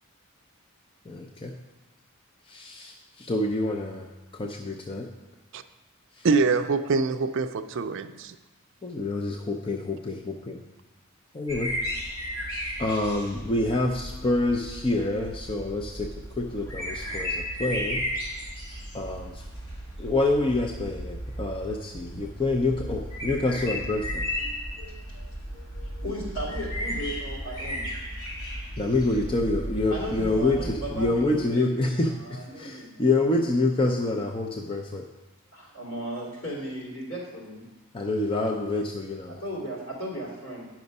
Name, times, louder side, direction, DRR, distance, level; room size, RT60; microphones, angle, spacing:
voice 1, 1.1-1.5 2.5-5.1 6.1-6.3 8.8-10.6 11.3-11.7 12.8-18.0 18.9-19.5 20.0-24.3 28.8-35.0 37.9-39.4, left 2 dB, 25° left, 0.5 m, -27 dB
voice 2, 6.2-8.3, right 4 dB, 55° right, 0.4 m, -24 dB
sound 1, 11.5-31.2, equal, 85° left, 2.9 m, -35 dB
voice 3, 24.4-27.9 29.9-31.7 32.0-33.1 35.5-37.6 39.3-40.6, equal, 70° left, 3.0 m, -36 dB
9.6 x 6.0 x 5.3 m
head